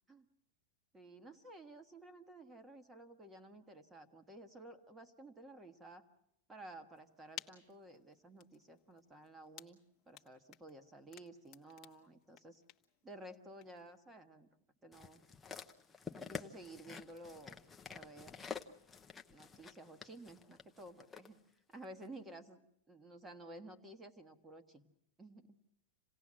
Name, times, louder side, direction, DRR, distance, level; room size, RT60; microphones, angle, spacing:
voice 1, 0.9-6.0 6.5-9.8 10.1-12.6 13.0-14.5 14.8-15.2 16.1-17.6 17.9-18.5 19.3-21.4 21.7-22.6 22.9-24.9 25.2-25.5, right 1 dB, 10° right, 8 dB, 1.5 m, -54 dB
sound 1, 6.9-14.0, left 13 dB, 30° left, 1.2 m, -57 dB
sound 2, 14.9-21.3 22.0-22.1, left 5 dB, 10° left, 0.8 m, -49 dB
27.5 x 17.5 x 7.6 m, 0.77 s
supercardioid pair, 160°, 0 cm